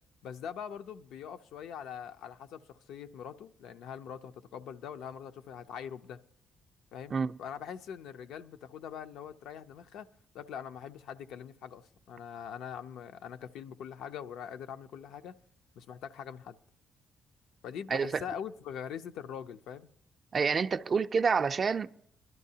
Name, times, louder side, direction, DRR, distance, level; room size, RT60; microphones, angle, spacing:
voice 1, 0.2-6.2 6.9-10.1 10.3-15.4 15.8-16.6 17.6-19.9, left 8 dB, 85° left, 0.4 m, -43 dB
voice 2, 17.9-18.2 20.3-21.9, right 5 dB, 40° right, 0.4 m, -28 dB
20.5 x 12.0 x 2.8 m
cardioid pair, 90°, 0 cm